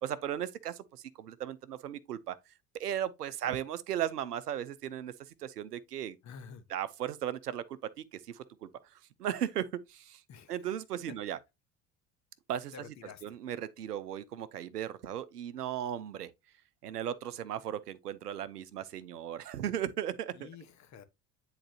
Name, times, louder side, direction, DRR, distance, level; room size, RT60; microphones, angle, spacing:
voice 1, 0.0-2.4 2.7-5.1 5.4-6.2 6.7-8.7 9.2-10.2 10.5-11.4 12.5-16.3 16.8-20.5, right 10 dB, 80° right, 0.6 m, -36 dB
voice 2, 6.2-6.6 10.3-10.5 12.7-13.2 20.4-21.0, left 6 dB, 35° left, 1.2 m, -49 dB
9.9 x 3.9 x 2.8 m
figure-of-eight pair, 60°, 46 cm